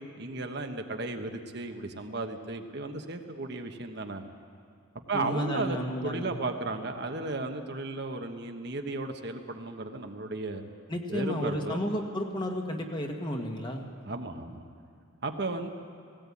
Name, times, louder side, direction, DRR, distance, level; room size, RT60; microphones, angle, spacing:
voice 1, 0.0-4.2 5.1-5.8 6.0-10.6 11.1-11.8 14.0-14.6 15.2-15.7, right 2 dB, 55° right, 5 dB, 1.2 m, -34 dB
voice 2, 5.1-6.4 10.9-13.9, equal, 25° left, 2 dB, 1.7 m, -32 dB
18.0 x 17.5 x 8.5 m, 2.2 s
head